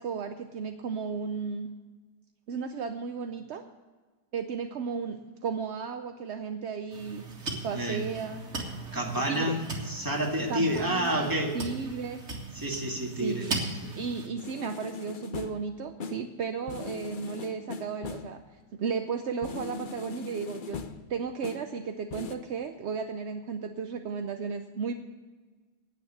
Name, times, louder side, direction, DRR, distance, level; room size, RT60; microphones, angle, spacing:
voice 1, 0.0-1.7 2.5-3.7 4.3-7.3 7.6-8.5 9.3-9.6 10.5-11.3 11.5-12.2 13.2-13.4 14.0-18.4 18.8-20.8 21.1-24.9, right 5 dB, 65° right, 7 dB, 0.6 m, -34 dB
sound 1, 6.9-14.3, right 2 dB, 40° right, 2.2 m, -38 dB
voice 2, 7.7-8.1 8.9-11.6 12.5-13.5 13.8-14.0, right 1 dB, 10° right, 0 dB, 1.8 m, -29 dB
sound 2, 14.4-15.7 16.0-16.4 16.7-18.4 19.4-21.1 21.4-21.8 22.1-22.3, left 5 dB, 60° left, 0.5 m, -40 dB
9.4 x 9.4 x 7.8 m, 1.4 s
omnidirectional pair, 1.9 m